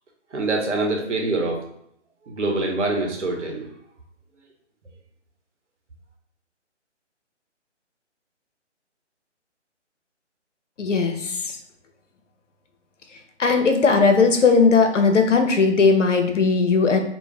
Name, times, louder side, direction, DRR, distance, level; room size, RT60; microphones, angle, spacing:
voice 1, 0.3-1.6 2.3-3.7, right 2 dB, 75° right, 1 dB, 0.9 m, -24 dB
voice 2, 10.8-11.6 13.4-17.0, left 4 dB, 90° left, 5 dB, 0.6 m, -18 dB
2.5 x 2.0 x 3.2 m, 0.74 s
figure-of-eight pair, 150°, 36 cm